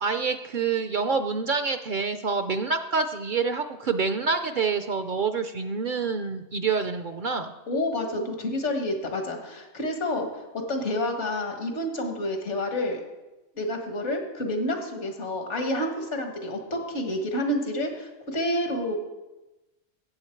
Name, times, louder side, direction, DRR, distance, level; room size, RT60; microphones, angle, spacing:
voice 1, 0.0-7.5, right 5 dB, 55° right, 9 dB, 0.6 m, -27 dB
voice 2, 7.7-10.4 10.7-13.0 13.6-19.0, left 1 dB, 75° left, 4 dB, 1.9 m, -29 dB
14.5 x 8.2 x 4.5 m, 1.1 s
omnidirectional pair, 1.2 m